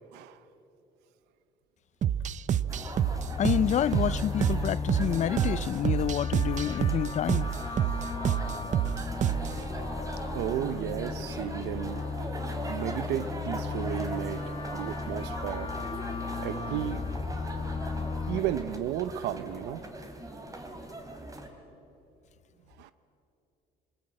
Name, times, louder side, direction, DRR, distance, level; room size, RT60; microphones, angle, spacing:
voice 1, 0.1-0.4 10.3-12.0 12.7-14.4 14.7-15.7 16.4-17.0 18.3-19.8 22.8-22.9, right 12 dB, 90° right, 0.7 m, -33 dB
sound 1, 2.0-9.6, right 10 dB, 45° right, 0.6 m, -28 dB
sound 2, 2.5-18.4, left 4 dB, 25° left, 2.0 m, -36 dB
sound 3, 2.7-21.5, right 1 dB, 20° right, 3.0 m, -41 dB
voice 2, 3.4-7.5, left 10 dB, 45° left, 0.5 m, -28 dB
24.5 x 20.0 x 8.8 m
cardioid pair, 110°, 17 cm